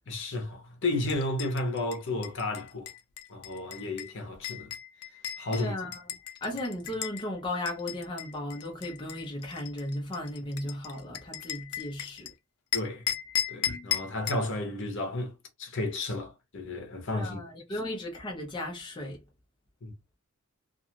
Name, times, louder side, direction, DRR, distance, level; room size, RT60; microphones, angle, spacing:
voice 1, 0.1-2.9 3.3-4.7 5.4-5.8 12.7-13.1 13.5-15.3 15.6-17.4 17.7-17.8 19.8-19.9, left 2 dB, 55° left, 0.8 m, -32 dB
sound 1, 1.1-7.2 7.7-12.3 12.7-14.5, left 11 dB, 80° left, 0.4 m, -36 dB
voice 2, 5.5-6.0 6.4-12.3 17.1-19.2, left 1 dB, 20° left, 0.6 m, -36 dB
2.5 x 2.3 x 2.8 m
head